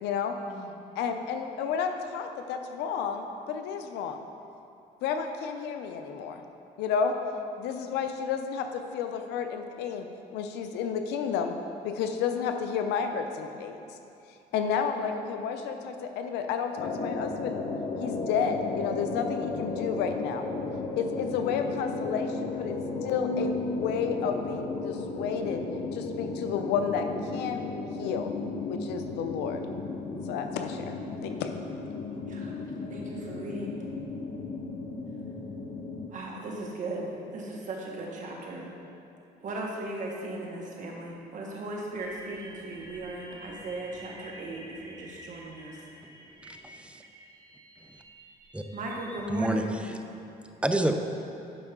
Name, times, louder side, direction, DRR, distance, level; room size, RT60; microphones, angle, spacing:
voice 1, 0.0-0.3 1.0-4.2 5.0-6.4 6.8-7.1 7.6-10.1 10.3-11.5 11.8-13.8 14.5-17.6 18.0-20.4 21.0-25.6 25.9-27.6 28.0-28.3 28.7-29.6 30.3-31.0 31.2-31.5, left 7 dB, 90° left, 6 dB, 0.6 m, -31 dB
sound 1, 16.8-36.1, left 3 dB, 50° left, 0.8 m, -34 dB
voice 2, 32.9-33.8 36.1-38.7 39.4-45.8 48.7-49.7, right 2 dB, 50° right, -2 dB, 1.7 m, -37 dB
sound 2, 42.0-49.3, right 1 dB, 20° right, 0.9 m, -50 dB
voice 3, 46.5-47.0 48.5-48.6 49.3-50.0 50.6-50.9, right 1 dB, 5° right, 5 dB, 0.5 m, -28 dB
12.0 x 5.3 x 3.7 m, 2.8 s
cardioid pair, 110°, 17 cm